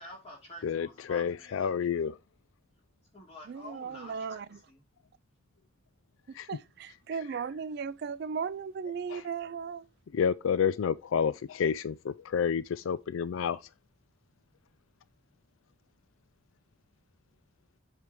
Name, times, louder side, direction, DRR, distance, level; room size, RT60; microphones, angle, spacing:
voice 1, 0.0-1.9 3.1-4.8, equal, 30° left, 3.4 m, -49 dB
voice 2, 0.6-2.2 6.3-6.5 7.1-7.2 9.1-9.3 10.1-13.7, left 7 dB, 90° left, 0.4 m, -30 dB
voice 3, 3.5-4.5 6.5-9.8, right 6 dB, 55° right, 0.3 m, -36 dB
7.4 x 3.3 x 5.2 m
head